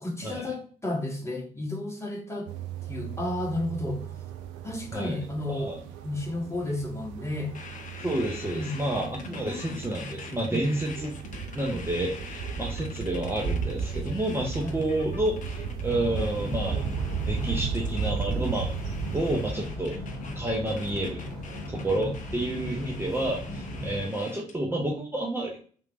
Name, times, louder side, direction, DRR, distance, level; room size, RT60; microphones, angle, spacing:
voice 1, 0.0-2.5 2.9-4.0 4.6-5.7 6.0-7.6 8.5-8.8 10.5-10.7 14.6-14.8 21.9-22.1, left 2 dB, 15° left, -2 dB, 1.2 m, -32 dB
sound 1, 2.5-19.5, right 6 dB, 65° right, 0.4 m, -35 dB
sound 2, 7.5-24.6, left 5 dB, 40° left, 0.6 m, -44 dB
voice 2, 8.0-11.2 11.5-15.4 15.8-16.8 17.2-18.7 19.1-20.0 20.3-21.2 21.7-25.5, right 1 dB, 10° right, -1 dB, 0.7 m, -29 dB
sound 3, 15.8-24.1, left 1 dB, 85° right, 1.1 m, -37 dB
3.2 x 3.0 x 2.4 m, 0.43 s
figure-of-eight pair, 40°, 20 cm